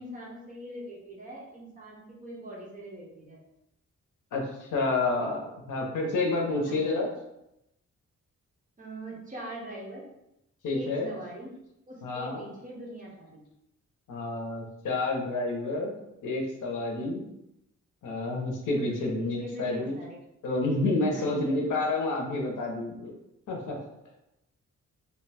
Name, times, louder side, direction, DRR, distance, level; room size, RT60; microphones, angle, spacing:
voice 1, 0.0-3.4 6.6-7.0 8.8-10.1 10.7-11.5 11.9-13.4 19.0-20.2 21.1-21.5, right 1 dB, 25° right, -4 dB, 0.7 m, -42 dB
voice 2, 4.3-5.4 5.7-7.1 10.6-11.1 12.0-12.4 14.1-15.9 16.2-17.2 18.0-20.0 20.4-23.1 23.5-23.8, left 2 dB, 85° left, 1 dB, 0.7 m, -29 dB
2.7 x 2.2 x 3.2 m, 0.85 s
wide cardioid pair, 175°, 30 cm